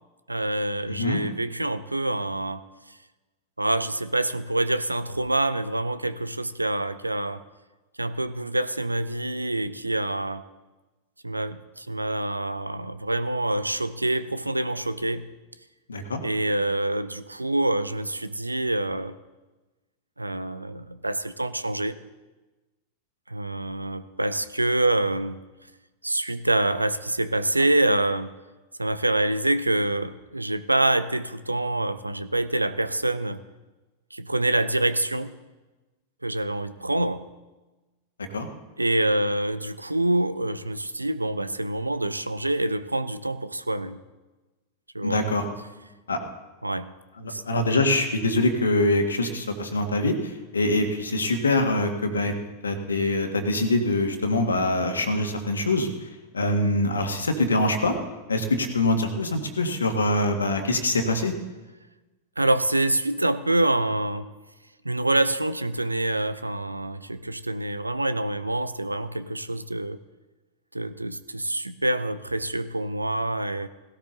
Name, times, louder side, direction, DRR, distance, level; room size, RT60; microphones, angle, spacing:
voice 1, 0.3-2.6 3.6-7.4 8.0-10.4 11.2-15.3 16.2-19.2 20.2-22.0 23.3-25.4 26.0-28.3 28.8-33.4 34.1-35.3 36.2-37.3 38.8-44.0 44.9-45.3 46.6-47.0 47.3-47.4 62.4-64.3 64.8-70.0 70.7-73.7, right 1 dB, 85° right, 14 dB, 0.6 m, -26 dB
voice 2, 0.9-1.2 15.9-16.2 38.3-38.5 45.0-45.5 46.1-46.2 47.2-50.2 50.5-52.3 52.6-55.9 56.3-57.9 58.3-61.3, left 2 dB, 75° left, 5 dB, 1.8 m, -24 dB
17.0 x 16.5 x 4.0 m, 1.2 s
figure-of-eight pair, 90°, 0 cm